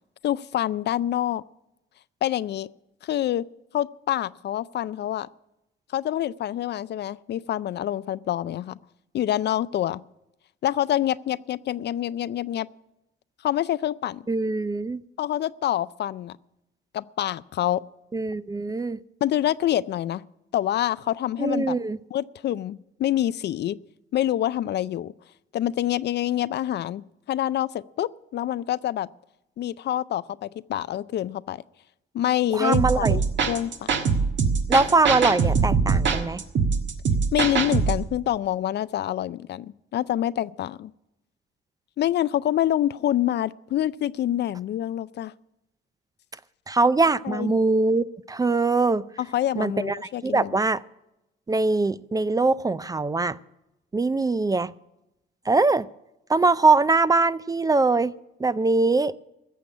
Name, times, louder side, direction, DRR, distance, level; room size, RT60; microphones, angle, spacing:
voice 1, 0.2-1.4 2.2-2.7 3.0-3.5 3.7-5.3 5.9-8.8 9.1-10.0 10.6-12.7 13.4-14.2 15.2-16.3 16.9-17.8 19.2-20.2 20.5-21.8 22.1-23.8 24.1-25.1 25.5-27.0 27.3-29.1 29.6-31.6 32.1-33.2 33.5-33.9 37.3-40.9 42.0-45.3 47.2-47.5 49.2-50.5, left 12 dB, 60° left, 0.4 m, -26 dB
voice 2, 14.3-15.0 18.1-19.0 21.4-22.0 32.5-33.2 34.7-36.4 46.7-49.0 49.6-50.8 51.5-53.4 53.9-54.7 55.5-55.9 56.3-58.1 58.4-59.1, right 3 dB, 20° right, 0.4 m, -22 dB
sound 1, 32.7-38.0, right 5 dB, 70° right, 1.5 m, -23 dB
15.0 x 7.2 x 9.7 m
cardioid pair, 90°, 20 cm